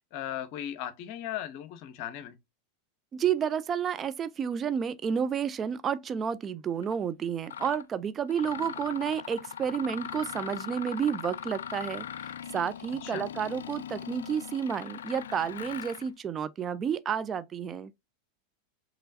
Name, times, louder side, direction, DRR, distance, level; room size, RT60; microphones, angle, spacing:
voice 1, 0.1-2.4 13.0-13.3, left 11 dB, 50° left, 0.7 m, -37 dB
voice 2, 3.1-17.9, right 7 dB, 30° right, 0.3 m, -31 dB
Mechanisms, 6.8-7.0 7.5-7.8 8.3-16.1, left 9 dB, 75° left, 0.3 m, -40 dB
5.4 x 3.0 x 2.6 m
figure-of-eight pair, 90°, 0 cm